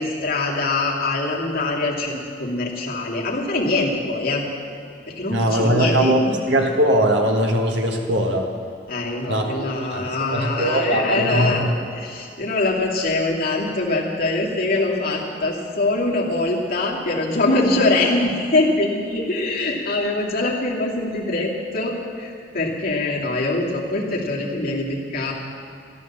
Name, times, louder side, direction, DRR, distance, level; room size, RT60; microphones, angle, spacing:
voice 1, 0.0-4.4 5.1-6.4 8.9-25.3, left 2 dB, 55° left, -3 dB, 2.7 m, -23 dB
voice 2, 5.3-8.5 9.3-11.7, right 1 dB, 70° right, 2 dB, 1.6 m, -20 dB
15.5 x 11.0 x 7.3 m, 2.5 s
head